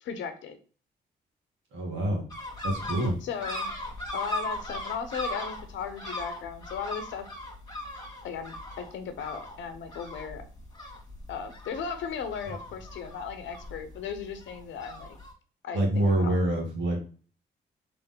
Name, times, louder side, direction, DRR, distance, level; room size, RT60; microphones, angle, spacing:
voice 1, 0.0-0.6 3.2-3.7 4.1-7.3 8.2-10.4 11.3-15.2 15.6-16.3, left 7 dB, 80° left, 8 dB, 0.8 m, -36 dB
voice 2, 1.7-2.3 2.6-3.2 15.7-17.0, right 1 dB, 75° right, 0 dB, 1.8 m, -26 dB
sound 1, 2.3-15.3, left 1 dB, 20° left, 1.8 m, -39 dB
3.8 x 3.5 x 3.7 m, 0.40 s
supercardioid pair, 50°, 19 cm